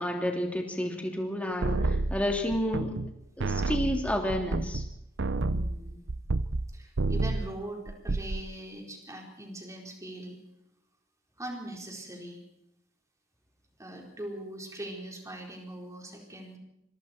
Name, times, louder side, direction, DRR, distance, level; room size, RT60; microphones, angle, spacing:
voice 1, 0.0-3.0 3.4-4.8, left 1 dB, 5° left, 1 dB, 3.3 m, -30 dB
sound 1, 1.6-3.1 3.4-6.7 7.0-7.5 7.9-8.4, right 2 dB, 65° right, 0.8 m, -29 dB
voice 2, 5.4-6.0 6.7-10.4 11.4-12.4 13.8-16.6, right 1 dB, 15° right, 1 dB, 4.6 m, -41 dB
26.0 x 23.0 x 4.6 m, 0.81 s
head